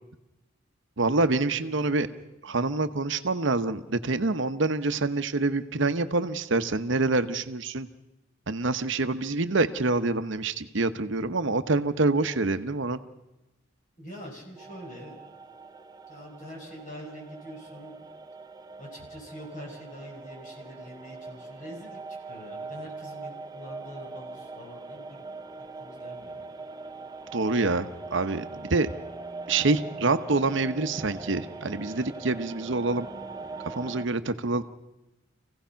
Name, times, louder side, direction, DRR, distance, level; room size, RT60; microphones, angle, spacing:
voice 1, 1.0-2.1 2.4-7.9 8.5-13.0 27.3-28.9 29.5-33.1 33.7-34.6, right 3 dB, 65° right, 10 dB, 0.9 m, -26 dB
voice 2, 1.9-2.2 14.0-15.2 16.1-18.0 18.8-22.0 22.3-25.2 25.8-26.5, equal, 40° left, -1 dB, 5.3 m, -44 dB
sound 1, 14.6-34.1, right 3 dB, 20° right, 0.8 m, -42 dB
27.5 x 16.5 x 5.8 m, 0.98 s
head